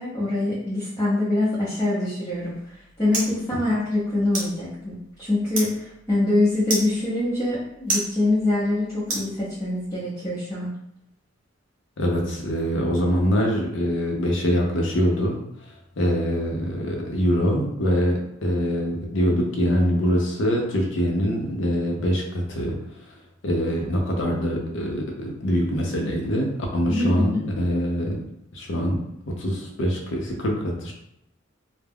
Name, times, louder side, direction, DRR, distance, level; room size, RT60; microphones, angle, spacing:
voice 1, 0.0-10.7 26.9-27.5, left 2 dB, 15° left, -11 dB, 0.7 m, -24 dB
sound 1, 2.3-9.9, right 2 dB, 40° right, 0.8 m, -34 dB
voice 2, 12.0-15.4 16.0-22.7 23.4-28.2 28.5-30.9, equal, 65° left, 0 dB, 0.6 m, -24 dB
2.3 x 2.0 x 3.4 m, 0.81 s
head